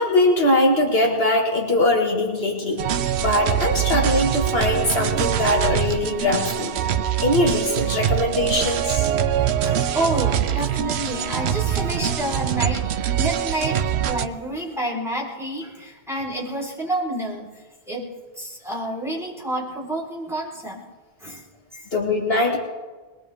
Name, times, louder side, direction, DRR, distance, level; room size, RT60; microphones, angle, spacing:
voice 1, 0.0-2.8 3.2-6.7 7.2-9.1 21.9-22.6, left 1 dB, 70° left, -1 dB, 2.1 m, -21 dB
sound 1, 2.8-14.3, right 9 dB, 85° right, 0.9 m, -23 dB
voice 2, 9.6-12.8 13.1-17.5 17.9-18.1 18.4-20.8 21.2-21.4 21.7-21.8, right 1 dB, ahead, -5 dB, 4.2 m, -29 dB
21.5 x 17.5 x 3.6 m, 1.3 s
omnidirectional pair, 1.1 m